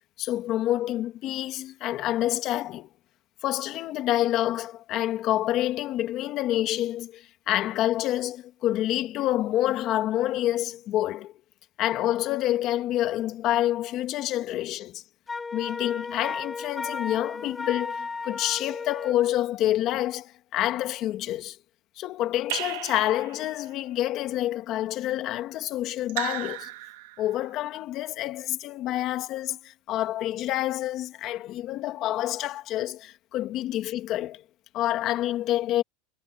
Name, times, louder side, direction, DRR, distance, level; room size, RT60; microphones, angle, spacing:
voice 1, 0.2-2.9 3.4-11.3 11.8-15.0 15.5-21.6 22.0-26.7 27.2-34.4 34.7-35.8, left 14 dB, 40° left, 1.8 m, -28 dB
Wind instrument woodwind instrument, 15.3-19.2, left 4 dB, 15° left, 2.0 m, -34 dB
Raindrop / Drip, 22.5-23.7 26.1-27.4, right 18 dB, 70° right, 1.5 m, -35 dB
supercardioid pair, 150°, 0 cm